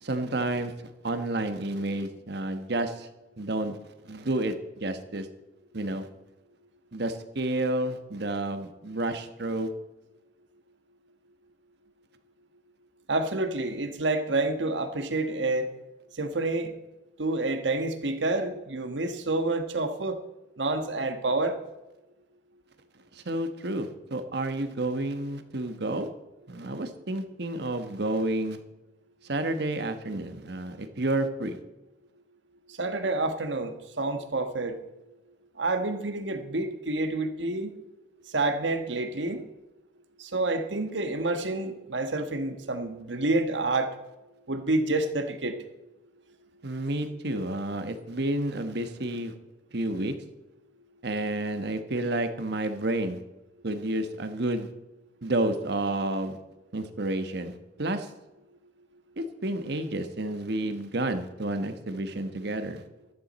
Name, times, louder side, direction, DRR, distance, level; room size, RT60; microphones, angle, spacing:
voice 1, 0.0-0.7 1.0-3.1 3.4-3.8 4.0-5.3 5.7-6.1 6.9-9.7 23.1-26.1 26.5-28.6 29.2-31.6 46.6-49.3 49.7-50.1 51.0-53.2 53.6-54.7 55.2-56.4 56.7-58.1 59.2-62.8, right 1 dB, 65° right, 9 dB, 1.2 m, -30 dB
voice 2, 13.1-15.7 16.2-16.7 17.2-20.2 20.6-21.6 32.8-34.8 35.6-37.7 38.3-39.4 40.2-43.9 44.5-45.6, right 2 dB, 85° right, 8 dB, 1.3 m, -28 dB
14.0 x 12.5 x 4.2 m, 1.0 s
head